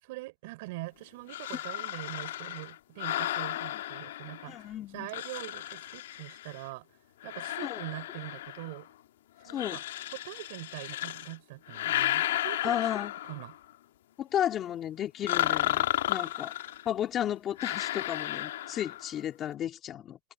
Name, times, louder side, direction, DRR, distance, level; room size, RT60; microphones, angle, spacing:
voice 1, 0.0-6.9 7.2-8.9 9.4-9.8 10.1-12.8 13.3-13.5 16.2-16.3, right 22 dB, 55° right, 5.5 m, -43 dB
sound 1, 1.3-4.7 5.1-6.7 7.2-8.9 9.5-11.3 11.7-13.6 15.3-16.9 17.6-19.1, left 14 dB, 75° left, 2.2 m, -33 dB
voice 2, 4.5-5.1 7.6-7.8 9.5-9.8 12.6-13.1 14.2-16.5 16.8-20.2, left 10 dB, 30° left, 2.7 m, -33 dB
supercardioid pair, 145°, 0 cm